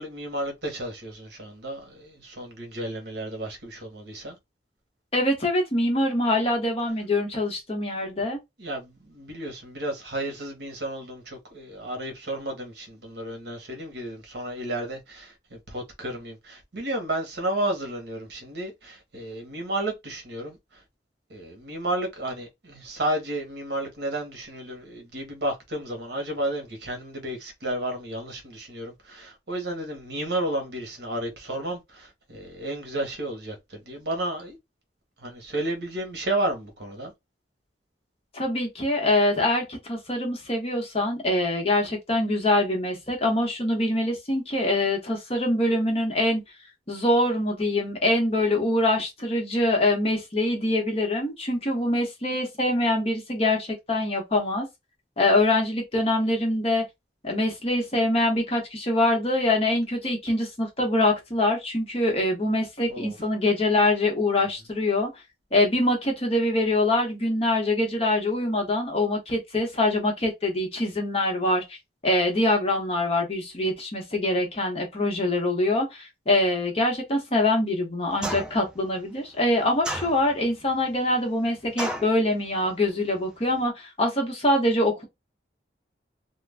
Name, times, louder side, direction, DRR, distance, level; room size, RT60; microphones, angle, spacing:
voice 1, 0.0-4.4 8.6-20.8 21.3-34.6 35.2-37.1 62.9-63.2, right 1 dB, 70° right, 1.0 m, -32 dB
voice 2, 5.1-8.4 38.3-46.4 46.9-54.7 55.2-56.8 57.2-65.2 65.5-71.8 72.0-85.0, left 1 dB, 35° left, 0.8 m, -24 dB
sound 1, 78.2-78.7 79.8-80.5 81.8-82.2, right 1 dB, 5° right, 0.3 m, -32 dB
2.4 x 2.1 x 3.3 m
head